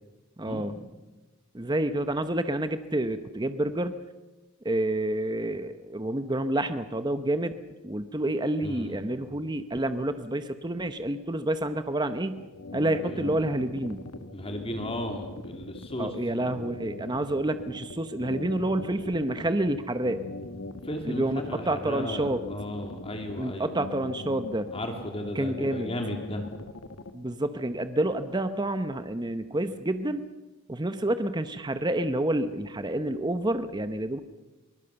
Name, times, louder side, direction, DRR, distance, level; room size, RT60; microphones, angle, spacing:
voice 1, 0.4-0.8 1.5-3.9 4.6-7.5 7.8-12.4 12.7-14.0 16.0-20.2 21.0-22.4 23.4-24.7 25.3-25.9 27.1-30.2 30.7-34.2, right 1 dB, 20° right, 11 dB, 0.8 m, -28 dB
voice 2, 8.6-9.0 13.0-13.4 14.3-16.2 20.8-23.9 24.7-26.5, left 1 dB, 25° left, 4 dB, 2.7 m, -35 dB
sound 1, 12.4-27.1, left 2 dB, 85° left, 1.4 m, -41 dB
23.0 x 20.0 x 6.9 m, 1.1 s
head